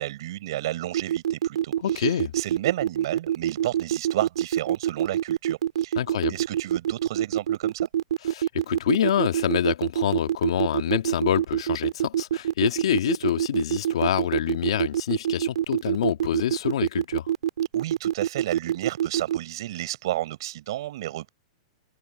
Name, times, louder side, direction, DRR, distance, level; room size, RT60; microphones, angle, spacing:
voice 1, 0.0-6.0 6.3-7.9 17.7-21.3, right 14 dB, 55° right, 5.3 m, -32 dB
sound 1, 0.9-19.4, right 11 dB, 85° right, 2.8 m, -25 dB
voice 2, 1.8-2.3 6.0-6.3 8.3-17.3, left 10 dB, 75° left, 2.1 m, -26 dB
supercardioid pair, 170°, 3 cm